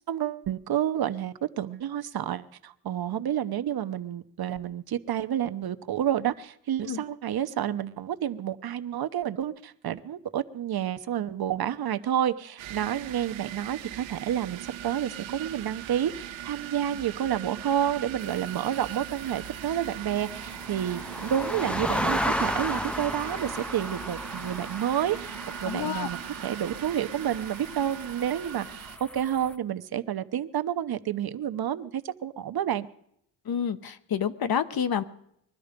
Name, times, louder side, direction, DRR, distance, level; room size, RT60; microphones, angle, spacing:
voice 1, 0.1-32.9, right 10 dB, 55° right, 11 dB, 0.9 m, -30 dB
sound 1, 12.6-29.0, right 11 dB, 80° right, 1.1 m, -40 dB
sound 2, 18.2-29.5, equal, ahead, 0.6 m, -35 dB
voice 2, 25.6-26.1 33.5-35.0, left 8 dB, 50° left, 12 dB, 1.1 m, -28 dB
22.0 x 12.5 x 5.2 m, 0.74 s
cardioid pair, 105°, 45 cm